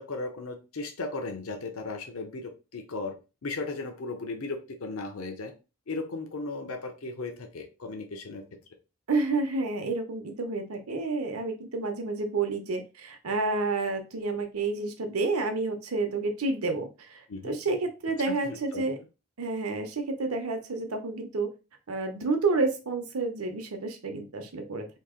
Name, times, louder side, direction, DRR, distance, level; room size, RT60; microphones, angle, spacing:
voice 1, 0.0-3.1 3.4-5.5 5.9-8.4 17.3-17.6 18.3-18.8, left 3 dB, 80° left, 4 dB, 0.7 m, -36 dB
voice 2, 9.1-19.0 19.4-21.5 21.9-24.9, right 3 dB, 85° right, 6 dB, 0.8 m, -30 dB
2.9 x 2.7 x 3.7 m, 0.30 s
head